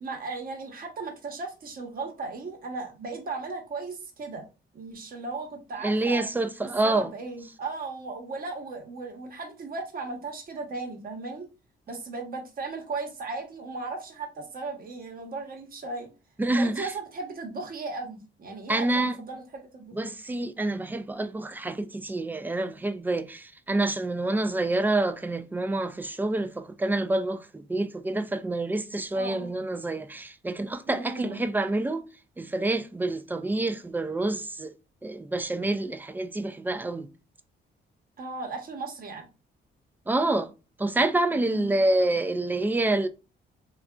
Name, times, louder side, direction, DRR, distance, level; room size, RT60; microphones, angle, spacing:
voice 1, 0.0-4.4 4.7-6.3 6.8-11.5 11.9-16.1 16.6-20.1 29.1-29.5 30.9-31.4 38.2-39.3 41.5-41.8, right 3 dB, 45° right, 0.9 m, -36 dB
voice 2, 5.8-7.1 16.4-16.9 18.7-19.2 19.9-32.0 32.4-34.7 35.0-37.1 40.1-40.5 40.8-43.1, right 2 dB, 10° right, 0.3 m, -27 dB
3.4 x 2.4 x 2.3 m
cardioid pair, 90°, 20 cm